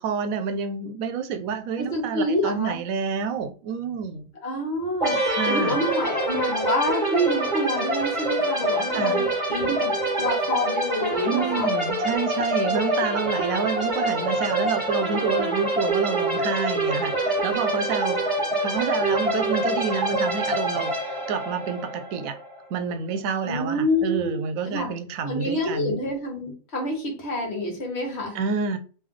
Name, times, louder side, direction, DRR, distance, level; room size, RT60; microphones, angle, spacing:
voice 1, 0.0-4.3 5.3-5.8 8.9-9.2 11.3-18.2 18.6-22.4 22.7-26.0 28.3-28.8, right 6 dB, 90° right, 1.0 m, -28 dB
voice 2, 1.8-2.8 4.4-11.7 23.4-24.3 24.6-24.9 25.2-28.4, left 1 dB, 55° left, 1.4 m, -27 dB
sound 1, 5.0-22.6, right 1 dB, 25° right, 1.4 m, -25 dB
3.2 x 2.9 x 3.7 m
omnidirectional pair, 1.4 m